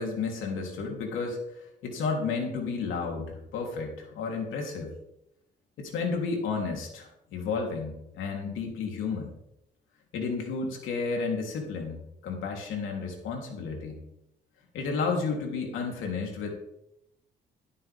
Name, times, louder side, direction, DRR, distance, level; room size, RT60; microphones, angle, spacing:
voice 1, 0.0-4.9 5.8-9.3 10.1-14.0 14.7-16.5, left 4 dB, 85° left, 1 dB, 3.6 m, -32 dB
17.0 x 12.0 x 3.7 m, 0.80 s
cardioid pair, 90°, 20 cm